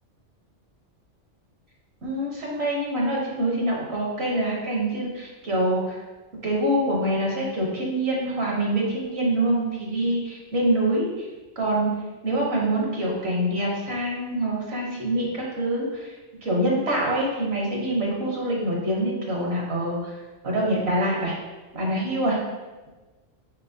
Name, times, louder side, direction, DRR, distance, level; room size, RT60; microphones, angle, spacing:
voice 1, 2.0-6.0 6.4-11.1 11.6-12.0 12.2-16.1 16.4-20.1 20.4-21.3 21.7-22.4, right 1 dB, 65° right, -3 dB, 1.1 m, -25 dB
4.5 x 3.8 x 2.7 m, 1.2 s
omnidirectional pair, 1.2 m